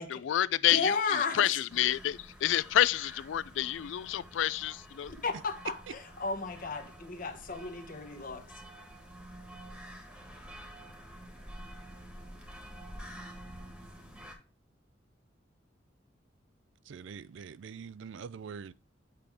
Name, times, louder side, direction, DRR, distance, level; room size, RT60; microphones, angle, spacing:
voice 1, 0.1-5.1, left 12 dB, 70° left, 0.3 m, -29 dB
voice 2, 0.7-1.6 5.1-8.4, left 4 dB, 45° left, 1.1 m, -34 dB
sound 1, 1.7-14.3, equal, 5° right, 1.4 m, -49 dB
voice 3, 16.9-18.7, right 6 dB, 70° right, 0.4 m, -44 dB
8.5 x 4.9 x 3.4 m
head